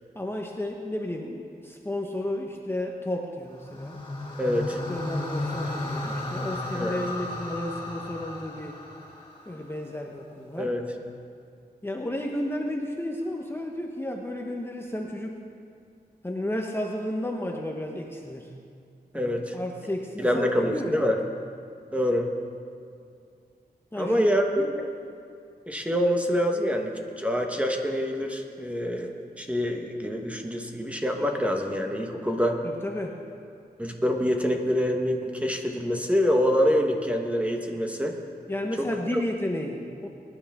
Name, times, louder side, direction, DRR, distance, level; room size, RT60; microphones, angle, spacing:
voice 1, 0.1-4.0 4.9-8.8 9.5-10.7 11.8-15.4 16.2-18.5 19.1-21.1 23.9-24.3 24.6-24.7 32.6-33.2 38.5-40.1, left 1 dB, 15° left, 1 dB, 1.0 m, -32 dB
sound 1, 3.5-9.8, left 1 dB, 30° left, 2.6 m, -34 dB
voice 2, 4.4-4.8 6.7-7.0 10.6-10.8 19.1-19.5 20.2-21.2 21.9-22.3 24.0-24.7 25.7-32.6 33.8-38.2 38.8-39.2, equal, 10° right, 2 dB, 1.2 m, -26 dB
22.0 x 10.5 x 3.6 m, 2.4 s
wide cardioid pair, 100°, 17 cm